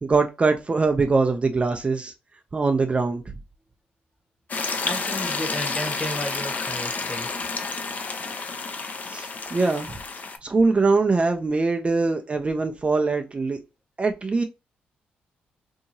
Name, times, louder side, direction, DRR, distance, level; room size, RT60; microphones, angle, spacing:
voice 1, 0.0-2.1 2.5-3.2 9.1-10.0 10.4-13.6 14.0-14.4, right 3 dB, 30° right, 0.4 m, -22 dB
sound 1, 4.5-10.4, left 4 dB, 40° left, 0.5 m, -30 dB
voice 2, 4.8-7.3, left 1 dB, 15° left, 1.1 m, -32 dB
2.8 x 2.6 x 2.6 m
supercardioid pair, 55°, 4 cm